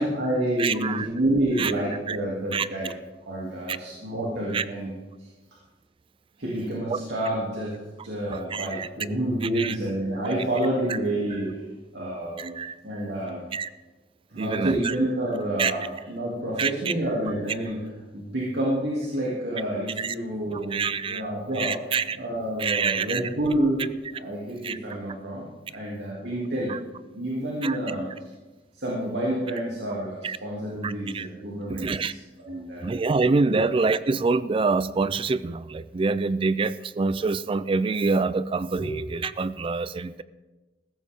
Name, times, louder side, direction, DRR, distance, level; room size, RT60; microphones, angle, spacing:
voice 1, 0.0-2.9 3.3-5.0 6.4-7.8 8.0-11.6 11.9-12.6 12.8-13.4 14.3-17.8 18.1-21.8 22.1-23.8 24.1-26.7 27.1-28.1 28.7-32.9 33.4-33.6 38.8-38.9, right 1 dB, 75° right, -5 dB, 2.7 m, -28 dB
voice 2, 0.6-1.1 1.6-1.7 2.1-2.2 2.5-2.7 3.7-3.8 4.5-4.6 6.9-7.0 8.3-8.9 9.6-9.8 12.4-12.8 13.5-13.7 14.4-14.9 15.6-15.7 16.6-16.9 20.0-20.1 20.5-21.2 21.6-22.2 22.6-23.2 24.6-24.8 26.7-26.8 27.6-27.8 30.2-30.4 30.8-31.3 31.7-32.1 32.8-40.2, right 4 dB, 30° right, 16 dB, 0.4 m, -26 dB
15.5 x 13.5 x 3.6 m, 1.2 s
head